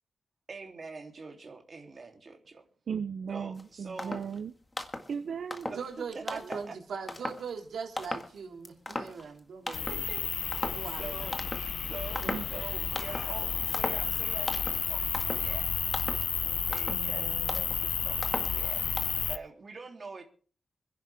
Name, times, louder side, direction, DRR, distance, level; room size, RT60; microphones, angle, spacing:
voice 1, 0.5-2.6 3.3-4.2 6.1-6.7 9.2-9.3 9.7-10.6 10.8-11.4 11.9-16.0 16.4-20.2, right 4 dB, 40° right, 2 dB, 3.2 m, -45 dB
voice 2, 2.9-4.5 5.1-5.7 6.4-6.6 12.2-12.4 13.8-14.0 16.9-17.7, right 6 dB, 65° right, 11 dB, 0.7 m, -37 dB
sound 1, 3.6-3.7 4.0-4.4 4.7-5.1 5.5-5.9 6.3-6.7 7.1-7.5 8.0-8.4 8.7-9.4 9.7-10.1 10.5-10.9 11.3-11.8 12.2-12.6 13.0-13.4 13.7-14.1 14.5-14.9 15.1-15.5 15.9-16.3 16.7-17.1 17.5-17.8 18.2-18.6 19.0-19.2, left 2 dB, 20° left, 1.8 m, -37 dB
voice 3, 5.7-10.0 10.7-11.3, right 5 dB, 90° right, 3 dB, 3.4 m, -40 dB
sound 2, 9.7-19.4, left 7 dB, 75° left, 0.6 m, -32 dB
26.0 x 11.0 x 3.6 m, 0.41 s
wide cardioid pair, 160°, 0 cm